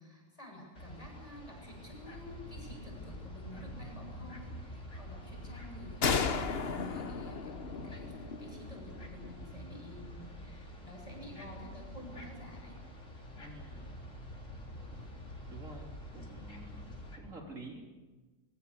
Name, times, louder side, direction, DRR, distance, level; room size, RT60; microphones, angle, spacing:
voice 1, 0.0-12.8, left 1 dB, 25° left, 0 dB, 7.9 m, -50 dB
sound 1, 0.8-17.2, equal, 65° left, 4.5 m, -47 dB
sound 2, 6.0-9.5, left 5 dB, 50° left, 1.2 m, -35 dB
voice 2, 13.4-14.0 15.5-17.9, right 2 dB, 70° right, 0 dB, 3.8 m, -49 dB
24.5 x 22.5 x 6.9 m, 1.2 s
omnidirectional pair, 1.4 m